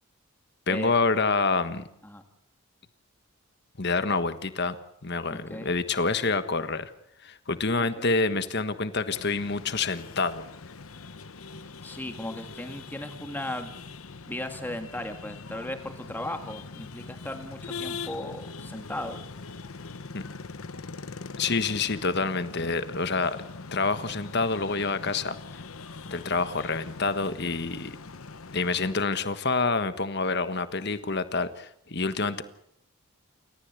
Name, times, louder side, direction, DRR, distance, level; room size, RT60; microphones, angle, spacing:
voice 1, 0.7-1.9 3.8-4.8 5.0-6.9 7.2-10.4 20.1-20.3 21.4-23.4 23.7-25.4 26.0-28.0 28.5-32.4, left 3 dB, 50° left, 11 dB, 1.4 m, -27 dB
voice 2, 5.3-5.7 7.7-8.1 11.8-13.7 14.3-19.2, left 1 dB, 10° left, 6 dB, 1.9 m, -37 dB
sound 1, 9.1-28.9, left 4 dB, 75° left, 1.0 m, -42 dB
29.5 x 14.0 x 8.3 m, 0.77 s
head